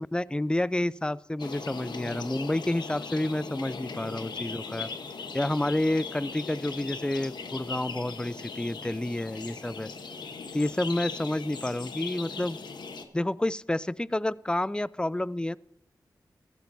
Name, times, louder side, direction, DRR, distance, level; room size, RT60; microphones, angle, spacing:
voice 1, 0.1-4.9 5.3-9.9 10.5-12.6 13.1-15.6, left 1 dB, 10° left, 20 dB, 0.4 m, -29 dB
sound 1, 1.4-13.0, left 4 dB, 85° left, 1.1 m, -39 dB
15.0 x 14.0 x 2.7 m, 0.84 s
cardioid pair, 45°, 7 cm